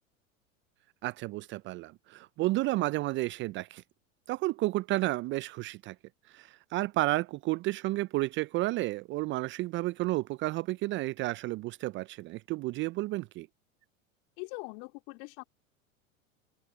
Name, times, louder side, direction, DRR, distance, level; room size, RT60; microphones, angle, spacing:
voice 1, 1.0-3.8 4.3-5.9 6.3-13.5, right 19 dB, 30° right, 0.4 m, -31 dB
voice 2, 14.4-15.4, left 34 dB, 55° left, 3.3 m, -42 dB
hypercardioid pair, 90°, 40 cm